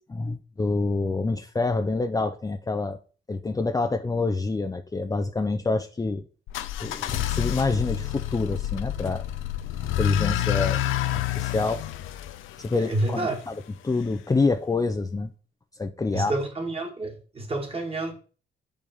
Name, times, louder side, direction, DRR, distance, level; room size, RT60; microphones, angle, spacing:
voice 1, 0.1-3.0 3.3-6.2 6.8-9.2 10.0-10.8 11.2-11.8 12.6-13.6 13.8-15.3 15.8-16.3, left 3 dB, 15° left, 0.6 m, -27 dB
sound 1, 6.5-13.4, left 12 dB, 90° left, 0.7 m, -28 dB
voice 2, 12.8-13.4 16.1-18.1, right 2 dB, 30° right, 2.1 m, -29 dB
6.6 x 5.4 x 5.4 m
cardioid pair, 90°, 20 cm